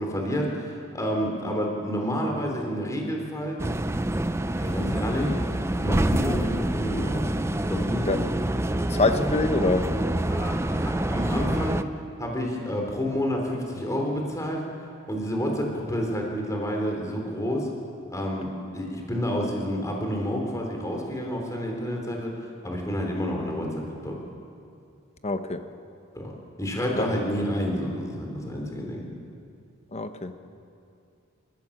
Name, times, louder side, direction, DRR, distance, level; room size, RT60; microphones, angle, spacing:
voice 1, 0.0-3.6 4.6-5.4 5.8-7.2 7.7-8.1 10.3-11.8 12.2-14.6 15.1-17.7 18.1-18.5 18.7-22.3 22.6-24.1 26.1-26.3 26.6-29.0, equal, 15° left, 0 dB, 3.5 m, -29 dB
sound 1, 3.6-11.8, right 1 dB, 15° right, 0.6 m, -26 dB
voice 2, 8.9-9.9 25.2-25.6 27.0-27.1 29.9-30.3, left 3 dB, 30° left, 8 dB, 1.1 m, -25 dB
28.0 x 15.0 x 7.3 m, 2.4 s
head